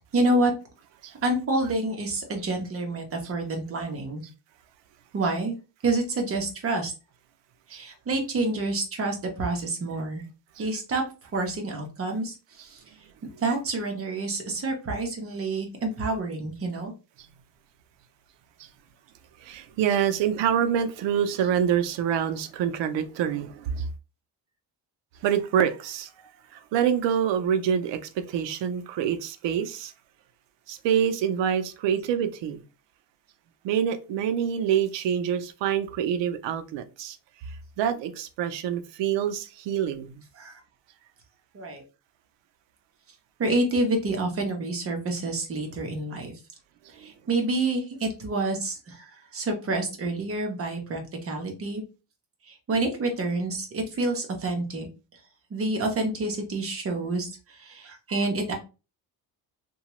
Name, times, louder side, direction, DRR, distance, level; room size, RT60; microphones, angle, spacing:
voice 1, 0.1-0.5 1.2-4.2 5.1-5.6 5.8-6.9 7.7-10.2 10.6-11.0 11.3-12.3 12.6-12.8 13.4-16.9 40.4-40.6 41.5-41.8 43.4-46.3 47.0-51.8 52.5-54.9 55.5-57.3 57.6-58.5, right 2 dB, 35° right, 0.8 m, -28 dB
voice 2, 19.4-23.8 25.2-26.1 26.5-28.0 28.3-29.9 30.7-32.6 33.6-37.2 37.8-40.2, right 8 dB, 85° right, 0.6 m, -26 dB
2.8 x 2.3 x 2.9 m
cardioid pair, 170°, 42 cm